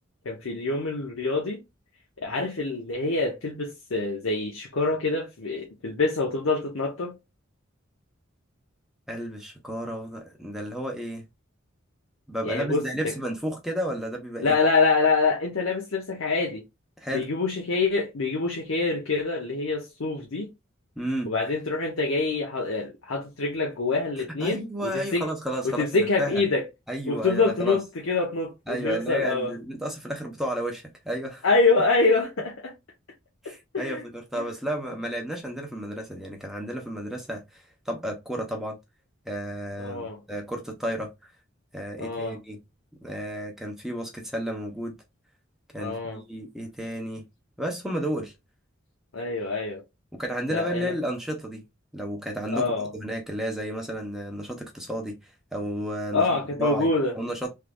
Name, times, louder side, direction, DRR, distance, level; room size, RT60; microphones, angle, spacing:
voice 1, 0.2-1.6 2.2-7.1 12.4-13.1 14.4-16.6 17.1-20.5 21.3-25.3 25.6-26.6 27.1-29.5 31.4-32.7 33.4-34.0 34.4-34.5 39.8-40.2 42.0-42.4 45.8-46.2 49.1-49.8 50.5-50.9 52.5-52.9 56.1-57.1, left 3 dB, 85° left, 0.8 m, -26 dB
voice 2, 9.1-11.2 12.3-14.5 17.0-17.3 21.0-21.3 24.4-26.4 26.9-27.8 28.7-31.5 33.4-38.8 39.3-41.3 41.7-42.6 43.0-45.0 45.7-47.3 47.6-48.3 50.1-51.6 51.9-52.7 52.9-55.2 55.5-57.5, equal, ahead, 0.7 m, -32 dB
3.4 x 3.1 x 2.2 m
head